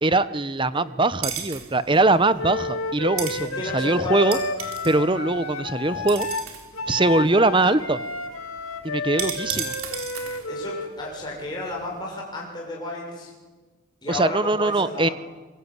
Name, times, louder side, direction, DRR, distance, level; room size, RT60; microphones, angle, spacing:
voice 1, 0.0-4.4 4.8-6.3 6.9-8.0 8.8-9.7 14.1-15.1, right 2 dB, 25° right, 14 dB, 0.9 m, -21 dB
sound 1, 1.2-12.0, right 7 dB, 85° right, 4.0 m, -37 dB
Wind instrument woodwind instrument, 2.4-10.9, left 2 dB, 80° left, 2.8 m, -31 dB
voice 2, 3.5-4.4 5.1-5.2 10.5-13.3 14.0-15.1, left 2 dB, 20° left, -3 dB, 6.9 m, -33 dB
24.5 x 23.0 x 9.6 m, 1.3 s
head